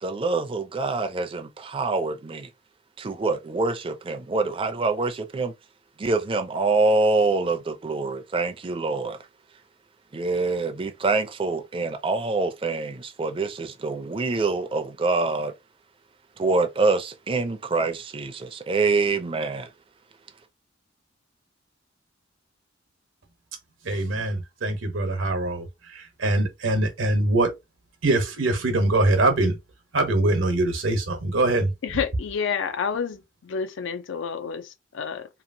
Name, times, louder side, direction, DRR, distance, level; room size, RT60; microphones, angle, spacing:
voice 1, 0.0-2.5 3.0-5.5 6.0-9.2 10.1-15.5 16.4-19.7, right 3 dB, 30° right, 0.4 m, -25 dB
voice 2, 23.8-27.5 28.0-29.6 29.9-31.7, right 2 dB, 85° right, 0.9 m, -23 dB
voice 3, 31.8-35.3, left 6 dB, 70° left, 0.4 m, -29 dB
2.9 x 2.4 x 2.6 m
head